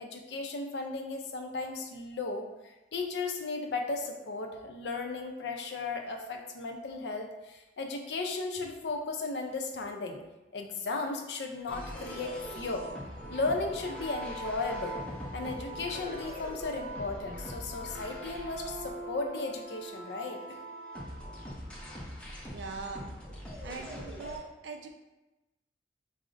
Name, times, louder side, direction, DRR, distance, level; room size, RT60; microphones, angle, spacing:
voice 1, 0.0-10.2 10.5-12.9 13.3-15.0 15.3-20.6, left 3 dB, 75° left, 4 dB, 0.4 m, -35 dB
sound 1, 11.7-24.4, equal, 5° left, 0.5 m, -41 dB
voice 2, 22.5-23.1 23.6-24.9, right 4 dB, 85° right, 3 dB, 0.4 m, -41 dB
4.8 x 2.0 x 2.5 m, 1.0 s
head